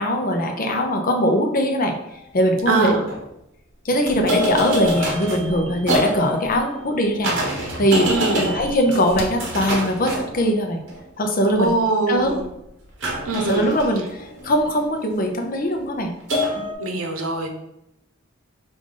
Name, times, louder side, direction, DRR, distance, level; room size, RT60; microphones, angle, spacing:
voice 1, 0.0-1.9 2.3-3.0 3.8-8.1 8.3-10.8 11.2-11.7 12.1-12.4 13.3-16.1 16.6-16.7, equal, 45° left, 3 dB, 0.7 m, -21 dB
sound 1, 2.1-2.2 2.8-3.2 4.1-11.0 13.0-15.0 16.3-16.7, equal, 65° right, 1.1 m, -26 dB
voice 2, 2.7-3.0 8.1-8.5 11.6-12.4 13.2-13.7 16.8-17.5, right 3 dB, 90° right, 3 dB, 0.8 m, -22 dB
sound 2, 4.0-6.0 9.1-9.5 12.1-15.0 15.6-16.1, left 1 dB, 70° left, 0.9 m, -42 dB
4.9 x 2.6 x 3.8 m, 0.82 s
head